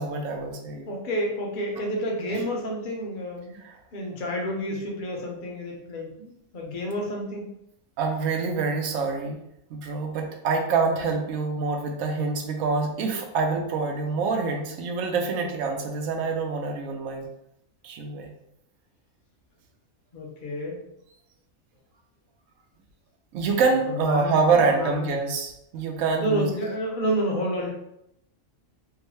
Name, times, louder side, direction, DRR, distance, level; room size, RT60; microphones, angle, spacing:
voice 1, 0.0-0.9 2.3-2.4 3.6-3.7 8.0-9.4 9.7-17.2 17.8-18.3 23.3-26.5, right 4 dB, 75° right, 2 dB, 1.0 m, -26 dB
voice 2, 0.9-3.6 3.9-7.5 20.1-20.8 23.9-25.2 26.2-27.7, equal, 45° left, -1 dB, 0.8 m, -30 dB
3.7 x 2.1 x 3.0 m, 0.79 s
omnidirectional pair, 1.4 m